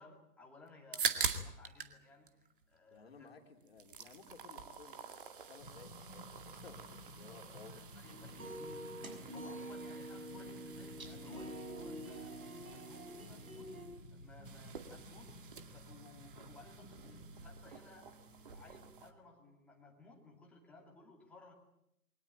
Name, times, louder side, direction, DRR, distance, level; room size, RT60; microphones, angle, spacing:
voice 1, 0.0-3.3 7.2-13.7 14.1-18.2 18.5-21.5, left 3 dB, 5° left, 0 dB, 2.4 m, -59 dB
sound 1, 0.7-2.0 2.3-3.3 3.6-19.1, right 6 dB, 35° right, 2.3 m, -45 dB
voice 2, 2.9-5.0 5.3-7.9, left 5 dB, 40° left, 5 dB, 3.4 m, -57 dB
sound 2, 5.6-17.7, equal, 90° left, 2.6 m, -54 dB
sound 3, 8.0-13.9, right 1 dB, 60° right, 6.5 m, -47 dB
23.0 x 19.0 x 9.0 m, 0.79 s
figure-of-eight pair, 145°, 46 cm